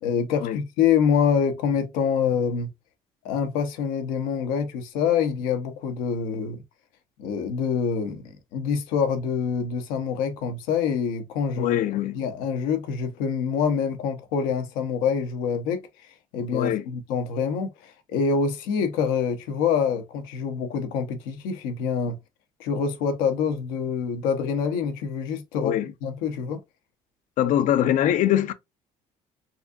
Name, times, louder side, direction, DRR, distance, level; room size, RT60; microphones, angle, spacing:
voice 1, 0.0-2.7 3.2-6.6 7.2-11.8 12.1-15.8 16.3-22.2 22.6-25.7 26.0-26.6, left 6 dB, 85° left, 0.9 m, -26 dB
voice 2, 11.6-12.2 16.5-16.8 25.6-25.9 27.4-28.5, left 11 dB, 65° left, 0.6 m, -22 dB
4.1 x 2.6 x 2.3 m
supercardioid pair, 80°, 14 cm